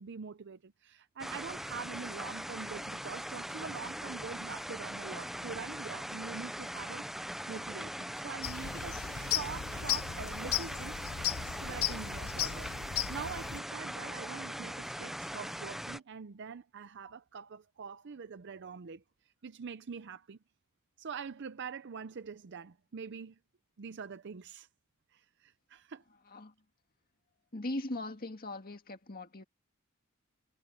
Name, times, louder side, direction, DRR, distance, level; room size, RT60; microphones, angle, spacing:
voice 1, 0.0-7.1 7.5-11.1 11.5-20.4 21.0-23.4 23.8-24.7 25.1-26.0, right 6 dB, 55° right, 0.5 m, -44 dB
sound 1, 1.2-16.0, equal, ahead, 0.5 m, -41 dB
sound 2, 8.4-13.6, left 11 dB, 85° left, 0.7 m, -36 dB
voice 2, 27.5-29.4, left 1 dB, 45° left, 2.0 m, -39 dB
head